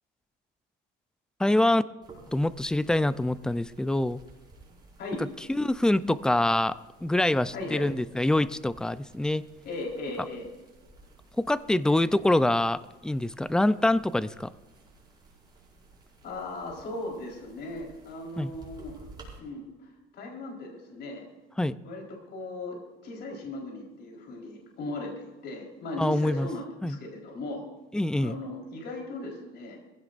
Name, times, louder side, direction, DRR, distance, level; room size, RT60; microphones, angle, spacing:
voice 1, 1.4-1.8 2.3-4.2 5.2-9.4 10.2-10.3 11.3-14.5 18.4-18.5 21.6-21.8 26.0-26.5 26.8-27.0 27.9-28.4, left 1 dB, 5° left, 15 dB, 0.4 m, -25 dB
sound 1, 2.0-19.4, right 3 dB, 20° right, 5.5 m, -54 dB
voice 2, 7.5-7.9 9.6-10.5 16.2-19.0 19.4-21.3 21.8-22.0 22.3-27.7 28.2-29.8, left 2 dB, 55° left, 0 dB, 4.1 m, -37 dB
22.5 x 16.0 x 2.5 m, 1.2 s
cardioid pair, 125°, 21 cm